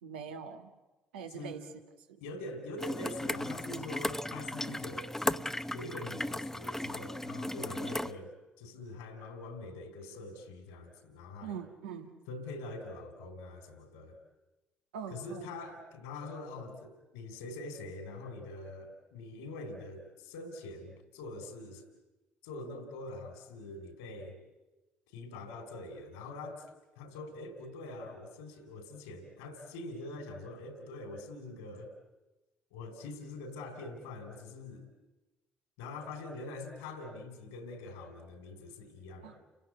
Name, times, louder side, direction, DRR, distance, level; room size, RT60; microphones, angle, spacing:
voice 1, 0.0-0.7 1.1-1.6 2.1-2.2 11.4-12.2 14.9-15.5 39.2-39.4, right 7 dB, 80° right, 5 dB, 1.7 m, -43 dB
voice 2, 2.2-8.3 8.6-11.6 12.3-14.2 15.1-21.8 22.4-24.4 25.1-26.7 27.0-31.9 32.7-34.9 35.8-39.4, left 2 dB, 75° left, 7 dB, 3.8 m, -44 dB
sound 1, 2.8-8.1, left 1 dB, 5° left, 0.8 m, -36 dB
30.0 x 16.5 x 9.5 m, 1.1 s
hypercardioid pair, 50°, 6 cm